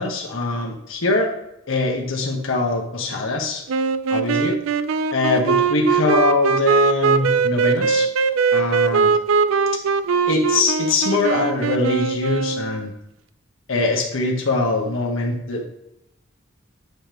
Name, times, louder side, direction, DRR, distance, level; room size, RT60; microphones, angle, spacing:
voice 1, 0.0-1.3 1.7-3.6 4.1-4.6 5.1-8.1 8.5-9.1 10.3-12.9 13.7-15.6, left 2 dB, 80° left, 0 dB, 1.3 m, -22 dB
sound 1, 3.7-12.9, right 5 dB, 85° right, 0.4 m, -20 dB
9.8 x 3.4 x 3.1 m, 0.84 s
head